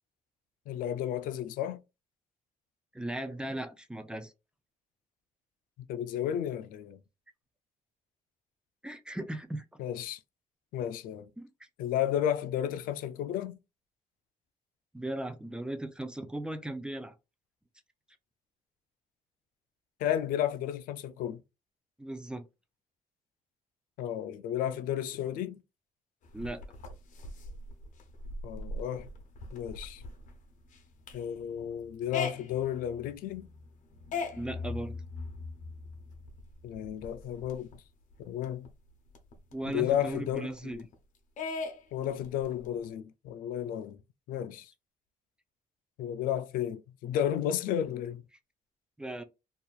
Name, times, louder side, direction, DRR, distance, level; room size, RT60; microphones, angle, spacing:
voice 1, 0.7-1.8 5.8-7.0 9.8-10.2 10.7-11.3 11.8-13.6 20.0-21.4 24.0-25.6 28.4-29.1 29.5-30.0 31.1-33.5 36.6-37.8 38.2-38.7 39.7-40.8 41.9-44.0 44.3-44.7 46.0-48.2, left 10 dB, 85° left, 0.4 m, -33 dB
voice 2, 2.9-4.3 8.8-9.6 11.4-11.5 14.9-17.1 22.0-22.5 26.3-26.6 34.4-35.0 39.5-40.8 49.0-49.2, right 1 dB, 5° right, 0.4 m, -37 dB
sound 1, 26.2-37.7 38.1-38.2 38.4-40.9 41.4-42.8, left 3 dB, 65° left, 0.8 m, -41 dB
2.8 x 2.3 x 2.3 m
cardioid pair, 140°, 14 cm